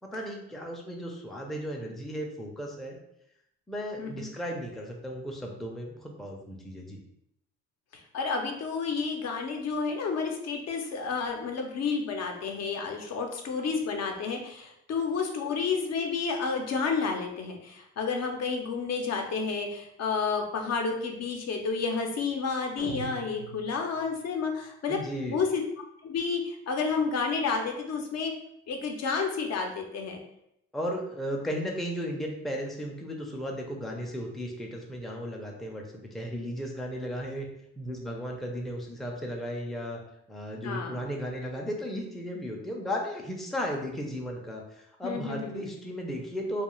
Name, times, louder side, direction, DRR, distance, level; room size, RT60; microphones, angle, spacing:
voice 1, 0.1-3.0 3.7-7.0 24.9-25.4 30.7-37.5 37.8-40.0 40.3-46.6, equal, ahead, 0 dB, 0.4 m, -35 dB
voice 2, 4.0-4.3 8.1-25.0 25.3-25.6 26.0-28.3 28.7-30.2 40.6-41.0 45.0-45.7, left 5 dB, 60° left, 3 dB, 0.6 m, -30 dB
sound 1, 22.8-24.2, right 4 dB, 85° right, 0.5 m, -42 dB
2.3 x 2.3 x 3.0 m, 0.78 s
cardioid pair, 90°, 30 cm